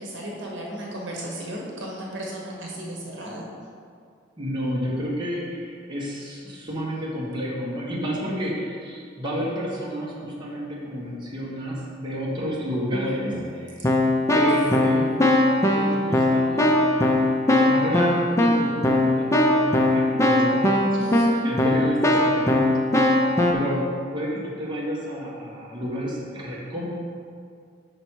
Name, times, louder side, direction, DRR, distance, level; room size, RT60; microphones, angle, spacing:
voice 1, 0.0-3.5 12.9-13.4 13.8-13.9 14.8-15.1 21.0-21.5, equal, 65° right, -3 dB, 1.2 m, -34 dB
voice 2, 4.4-13.3 13.6-13.7 14.3-15.0 15.7-20.7 21.3-26.9, equal, 25° right, -6 dB, 1.1 m, -30 dB
Keyboard (musical), 13.3-13.5 13.8-23.5, left 1 dB, 15° left, 0.5 m, -20 dB
5.6 x 5.2 x 4.6 m, 2.2 s
head